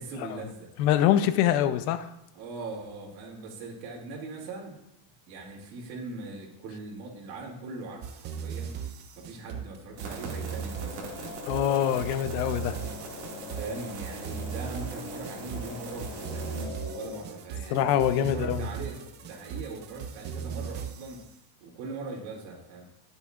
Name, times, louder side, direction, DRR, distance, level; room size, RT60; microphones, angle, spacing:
voice 1, 0.0-0.7 2.3-4.8 5.3-8.7 9.2-11.2 13.5-21.2 21.6-22.9, right 3 dB, 90° right, -2 dB, 2.7 m, -40 dB
voice 2, 0.8-2.1 11.5-12.8 17.7-18.7, left 11 dB, 65° left, 11 dB, 0.8 m, -24 dB
sound 1, 8.0-21.3, right 7 dB, 25° right, 0.3 m, -38 dB
sound 2, 10.0-16.6, right 4 dB, 50° right, 2.2 m, -43 dB
sound 3, 10.7-17.2, left 5 dB, 50° left, 1.4 m, -43 dB
18.0 x 6.9 x 2.5 m, 0.88 s
cardioid pair, 145°, 50 cm